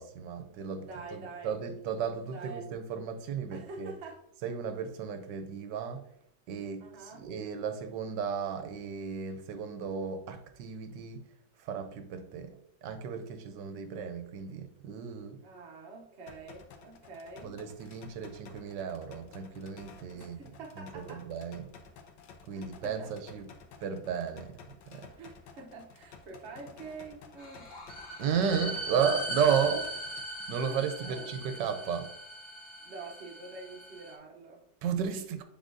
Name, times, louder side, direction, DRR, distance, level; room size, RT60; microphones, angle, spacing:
voice 1, 0.0-3.9 4.4-6.1 6.5-11.3 11.6-15.4 17.4-20.4 20.8-21.7 22.5-23.5 23.8-25.2 28.2-29.8 30.5-32.1 34.8-35.4, right 7 dB, 80° right, 1.3 m, -34 dB
voice 2, 0.7-1.5 2.3-2.7 3.5-4.2 6.8-7.3 15.4-17.6 20.1-21.3 22.5-23.1 25.2-27.7 29.4-29.7 30.6-31.3 32.8-34.6, right 3 dB, 45° right, 1.0 m, -46 dB
sound 1, 16.3-30.3, left 5 dB, 85° left, 1.4 m, -53 dB
sound 2, 27.4-34.1, right 1 dB, 25° left, 1.3 m, -39 dB
9.6 x 3.9 x 2.6 m
omnidirectional pair, 1.9 m